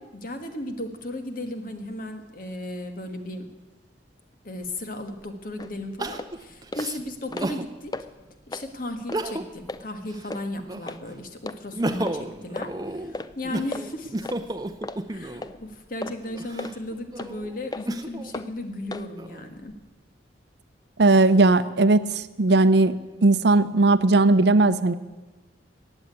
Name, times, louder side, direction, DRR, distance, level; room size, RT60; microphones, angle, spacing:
voice 1, 0.0-3.4 4.4-8.0 8.5-14.3 15.1-19.8, left 1 dB, 50° left, 6 dB, 1.5 m, -35 dB
Crying sobbing, 4.6-4.7 6.0-7.7 8.2-8.3 9.0-9.7 10.0-11.1 11.5-15.5 16.2-18.3 18.9-19.7, right 1 dB, 20° right, 0.7 m, -33 dB
sound 1, 5.6-5.7 6.1-6.3 6.7-6.9 7.2-7.6 7.9-8.1 8.5-8.7 9.1-9.2 9.7-9.8 10.3-10.4 10.9-11.0 11.5-11.6 12.0-12.2 12.6-12.7 13.1-13.3 13.7-13.8 14.2-14.4 14.8-15.0 15.4-15.6 16.0-16.2 16.6-16.7 17.2-17.3 17.7-17.9 18.3-18.5 18.9-19.1, left 2 dB, 20° left, 0.4 m, -34 dB
voice 2, 21.0-22.9 23.2-24.9, right 2 dB, 60° right, 13 dB, 0.6 m, -18 dB
15.0 x 9.0 x 9.7 m, 1.2 s
head